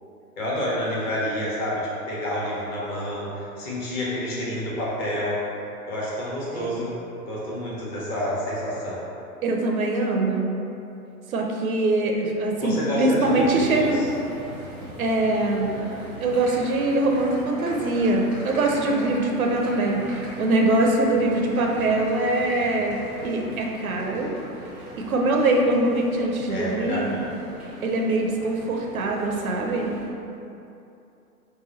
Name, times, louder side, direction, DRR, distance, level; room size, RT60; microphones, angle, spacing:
voice 1, 0.4-1.8 2.1-5.4 5.9-6.9 7.2-9.0 12.6-14.1 26.5-27.1, equal, 30° left, -6 dB, 1.1 m, -28 dB
voice 2, 9.4-10.5 11.3-14.0 15.0-15.7 16.2-23.0 23.2-24.3 25.1-27.2 27.8-29.9, right 2 dB, 65° right, 1 dB, 0.7 m, -23 dB
sound 1, 13.2-30.1, equal, 5° right, 0.7 m, -40 dB
4.8 x 2.2 x 4.2 m, 2.8 s
figure-of-eight pair, 110°, 46 cm